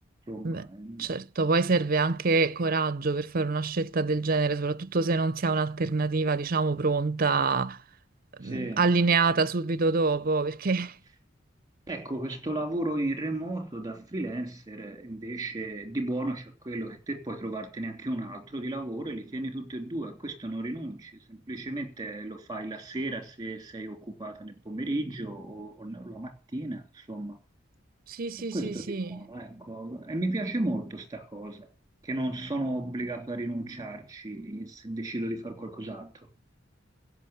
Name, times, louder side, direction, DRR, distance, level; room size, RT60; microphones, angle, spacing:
voice 1, 0.3-1.1 8.4-8.9 11.9-27.4 28.4-31.7 32.0-36.3, right 1 dB, 20° right, 3.1 m, -34 dB
voice 2, 1.0-7.8 8.4-11.0 28.1-29.2, right 3 dB, 50° right, 0.6 m, -26 dB
16.0 x 6.2 x 9.1 m
head